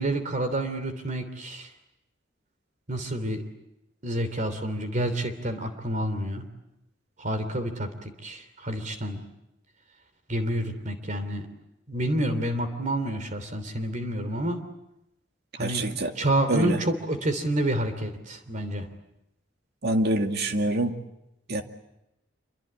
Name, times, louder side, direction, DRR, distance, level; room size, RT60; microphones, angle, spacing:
voice 1, 0.0-1.7 2.9-3.4 4.0-6.5 7.2-7.9 8.2-9.2 10.3-11.5 11.9-14.6 15.6-18.9, right 1 dB, 40° right, 8 dB, 3.1 m, -28 dB
voice 2, 15.6-16.1 16.5-16.8 19.8-21.0 21.5-21.6, right 1 dB, 60° right, 5 dB, 2.3 m, -25 dB
27.5 x 24.5 x 8.7 m, 0.85 s
head